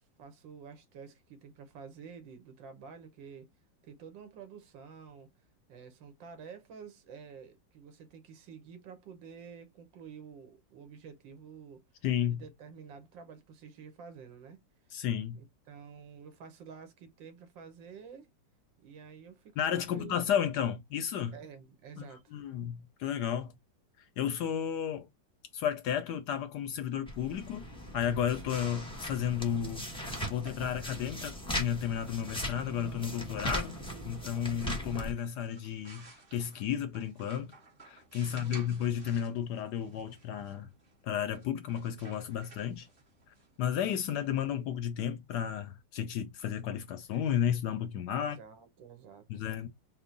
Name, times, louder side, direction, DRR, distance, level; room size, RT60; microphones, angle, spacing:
voice 1, 0.0-3.5 3.8-5.3 5.7-11.9 12.3-14.6 15.3-18.3 18.8-20.1 21.3-22.2 38.2-38.7 48.2-49.2, right 6 dB, 75° right, 1.6 m, -50 dB
voice 2, 12.0-12.4 14.9-15.4 19.6-21.4 22.0-23.5 24.2-25.1 25.5-27.7 27.9-29.9 30.3-33.7 34.0-37.5 37.9-40.7 41.0-42.9 43.6-48.4 49.3-49.7, left 9 dB, 75° left, 1.0 m, -33 dB
sound 1, 27.1-35.1, equal, 5° left, 0.7 m, -39 dB
sound 2, 29.5-45.1, right 3 dB, 35° right, 1.1 m, -57 dB
4.4 x 2.0 x 3.8 m
omnidirectional pair, 2.1 m